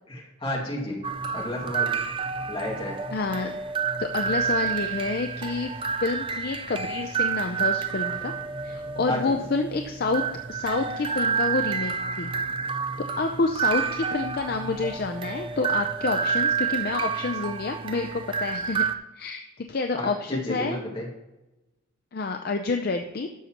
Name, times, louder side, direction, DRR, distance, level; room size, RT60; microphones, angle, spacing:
voice 1, 0.1-1.1 1.3-2.0 2.5-3.0 9.1-9.3 20.0-21.1, left 1 dB, 25° left, -3 dB, 2.1 m, -31 dB
sound 1, 1.0-19.0, right 6 dB, 25° right, 0.4 m, -29 dB
voice 2, 3.1-3.5 4.0-8.3 8.6-10.2 10.5-12.3 13.2-18.8 19.1-20.8 22.1-23.3, left 3 dB, 45° left, 5 dB, 0.5 m, -28 dB
12.0 x 6.7 x 2.9 m, 1.0 s
head